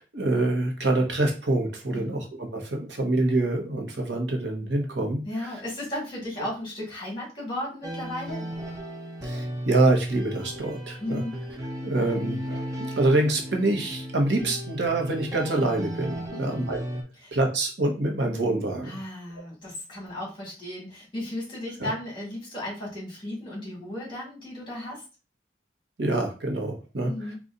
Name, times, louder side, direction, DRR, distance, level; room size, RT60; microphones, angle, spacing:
voice 1, 0.0-5.5 9.2-11.2 11.8-16.8 17.3-19.0 21.8-21.9 26.0-27.1, right 2 dB, 80° right, 2 dB, 1.0 m, -26 dB
voice 2, 5.2-8.5 11.0-11.4 16.3-16.7 17.2-17.3 18.8-25.0 27.0-27.4, left 1 dB, 30° left, -4 dB, 2.3 m, -35 dB
sound 1, 7.8-17.0, equal, 20° right, 0.6 m, -35 dB
4.0 x 2.4 x 3.7 m, 0.32 s
head